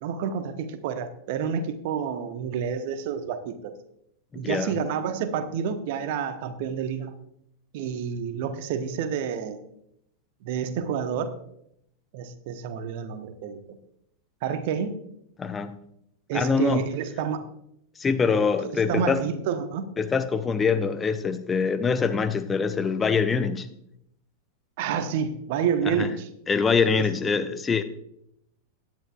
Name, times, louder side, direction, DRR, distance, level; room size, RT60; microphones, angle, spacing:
voice 1, 0.0-3.7 4.3-7.1 7.7-9.6 10.4-11.3 12.1-13.8 14.4-15.0 16.3-17.4 18.7-19.9 24.8-26.3 27.0-27.4, right 7 dB, 50° right, 10 dB, 1.0 m, -29 dB
voice 2, 4.4-4.8 15.4-15.7 16.3-16.8 18.0-19.2 20.0-23.7 25.9-26.1 26.5-27.8, left 5 dB, 15° left, 10 dB, 0.6 m, -24 dB
17.0 x 10.5 x 2.4 m, 0.75 s
figure-of-eight pair, 90°, 0 cm